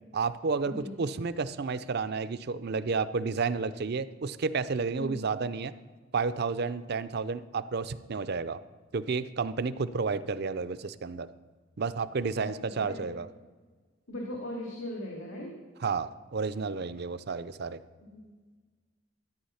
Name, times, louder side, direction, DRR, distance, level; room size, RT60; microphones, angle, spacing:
voice 1, 0.1-5.7 6.1-8.6 8.9-11.3 11.8-13.3 15.8-17.8, right 4 dB, 55° right, 14 dB, 0.5 m, -31 dB
voice 2, 0.6-1.0 4.9-5.2 12.6-13.2 14.1-15.5 18.0-18.3, left 1 dB, 85° left, -2 dB, 2.2 m, -39 dB
13.5 x 8.8 x 5.7 m, 1.4 s
head